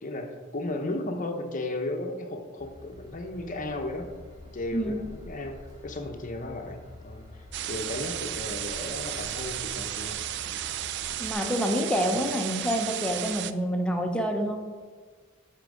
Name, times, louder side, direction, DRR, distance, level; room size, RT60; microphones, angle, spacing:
voice 1, 0.0-4.1 4.4-10.2 10.5-10.6, left 2 dB, 40° left, 4 dB, 0.8 m, -35 dB
Train / Engine, 2.6-11.3, left 2 dB, 20° right, 2.3 m, -47 dB
sound 1, 7.5-13.5, right 12 dB, 55° right, 0.3 m, -34 dB
voice 2, 11.2-14.6, equal, 5° left, 3 dB, 0.7 m, -27 dB
8.1 x 4.5 x 5.2 m, 1.5 s
head